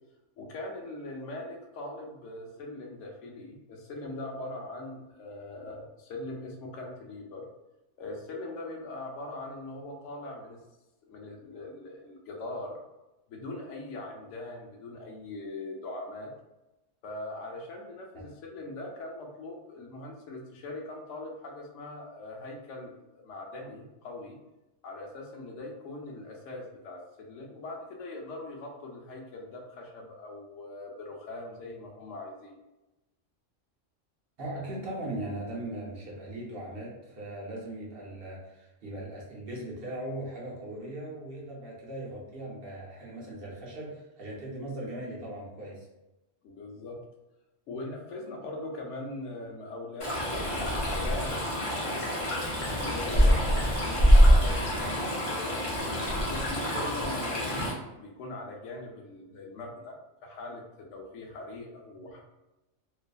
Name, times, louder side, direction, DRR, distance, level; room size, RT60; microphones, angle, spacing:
voice 1, 0.4-7.4 8.0-10.6 11.1-12.7 13.3-16.3 17.0-22.9 23.2-24.4 24.8-32.6 46.4-47.0 47.7-55.5 56.1-60.0 60.2-62.2, left 2 dB, 85° left, 0 dB, 0.9 m, -41 dB
voice 2, 34.4-45.9, right 1 dB, 55° right, -4 dB, 0.8 m, -39 dB
Stream, 50.0-57.7, equal, 35° left, 0.5 m, -25 dB
2.6 x 2.4 x 2.2 m, 0.99 s
omnidirectional pair, 1.2 m